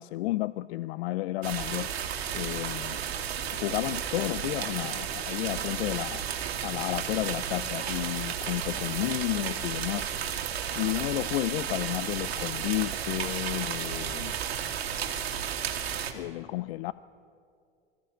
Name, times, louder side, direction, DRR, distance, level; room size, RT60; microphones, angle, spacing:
voice 1, 0.0-1.9 2.3-3.0 3.5-6.2 6.6-10.1 10.7-14.3 16.1-16.9, left 17 dB, 75° left, 17 dB, 0.5 m, -32 dB
sound 1, 1.4-16.1, right 8 dB, 85° right, 1.9 m, -33 dB
21.0 x 15.0 x 8.7 m, 2.4 s
hypercardioid pair, 95°, 30 cm